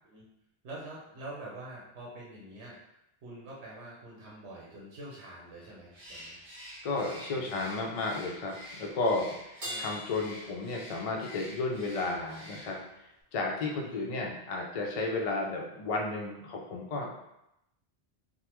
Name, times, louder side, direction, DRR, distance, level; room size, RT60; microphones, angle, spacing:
voice 1, 0.6-6.4 7.3-7.7 9.6-9.8 13.8-14.1, right 1 dB, 85° right, -4 dB, 1.0 m, -46 dB
Bird, 5.9-13.0, left 1 dB, 35° right, 0.7 m, -48 dB
voice 2, 6.8-8.5 8.8-9.3 9.8-12.8 13.3-17.1, left 3 dB, 60° left, 0 dB, 0.3 m, -32 dB
Crash cymbal, 9.6-11.3, equal, 65° right, 1.6 m, -42 dB
3.4 x 2.1 x 2.9 m, 0.85 s
omnidirectional pair, 1.1 m